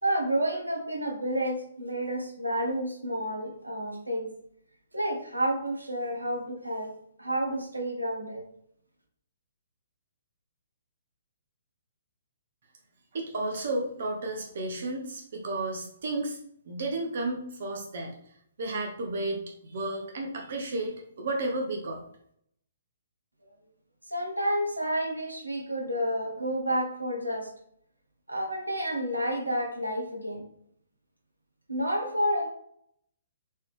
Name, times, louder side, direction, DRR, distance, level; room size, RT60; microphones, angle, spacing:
voice 1, 0.0-4.3 4.9-6.9 7.2-8.4 24.1-27.5 28.3-30.4 31.7-32.5, right 1 dB, 85° right, 1 dB, 1.1 m, -30 dB
voice 2, 13.1-16.4 16.7-18.1 18.6-19.4 19.7-22.0, right 2 dB, 55° right, 1 dB, 0.8 m, -32 dB
4.7 x 3.0 x 3.2 m, 0.67 s
figure-of-eight pair, 125°, 0 cm